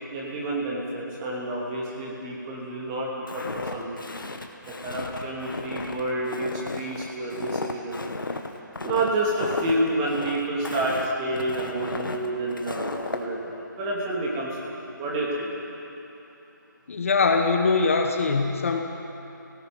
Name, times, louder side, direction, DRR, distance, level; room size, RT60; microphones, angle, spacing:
voice 1, 0.1-4.0 4.6-8.0 8.8-15.5, right 1 dB, 15° right, -4 dB, 2.7 m, -29 dB
Walk footsteps, 3.3-13.2, left 3 dB, 80° left, 1.9 m, -34 dB
voice 2, 16.9-18.8, left 4 dB, 40° left, 4 dB, 1.5 m, -22 dB
30.0 x 18.0 x 5.3 m, 3.0 s
figure-of-eight pair, 165°, 11 cm